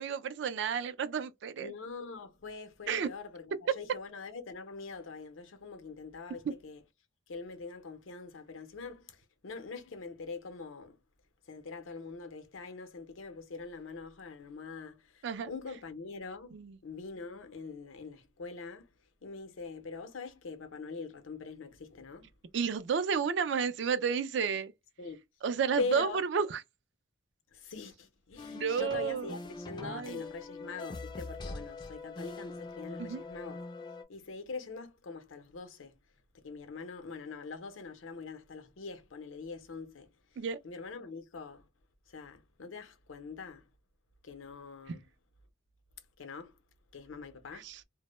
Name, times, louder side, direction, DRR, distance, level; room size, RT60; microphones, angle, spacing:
voice 1, 0.0-1.7 2.9-3.1 3.7-3.8 6.4-6.5 15.2-15.5 16.5-16.8 22.5-24.7 25.4-26.6 28.5-29.4 29.8-30.2 33.0-33.2 40.4-40.6 47.5-47.8, right 6 dB, 65° right, 0.3 m, -31 dB
voice 2, 1.6-6.8 7.3-11.0 11.5-18.9 19.2-22.3 25.0-25.2 25.8-26.2 27.5-33.6 34.1-35.9 36.3-40.1 40.6-41.6 42.1-43.7 44.2-45.0 46.2-46.5 46.9-47.7, left 4 dB, 80° left, 0.6 m, -43 dB
sound 1, 28.4-34.0, left 3 dB, 20° left, 0.3 m, -43 dB
2.0 x 2.0 x 3.0 m
head